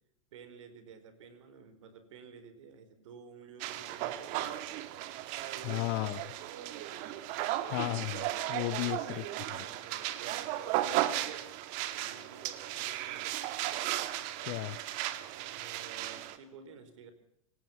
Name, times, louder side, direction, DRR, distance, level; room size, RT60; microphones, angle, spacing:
voice 1, 0.3-4.6 5.4-6.6 8.5-11.5 11.9-13.4 15.4-17.1, right 5 dB, 65° right, 4.5 m, -52 dB
sound 1, 3.6-16.4, right 14 dB, 50° right, 2.2 m, -36 dB
voice 2, 5.6-6.2 7.7-9.2 14.4-14.8, left 21 dB, 50° left, 0.9 m, -34 dB
27.0 x 19.0 x 5.8 m
hypercardioid pair, 95°, 17 cm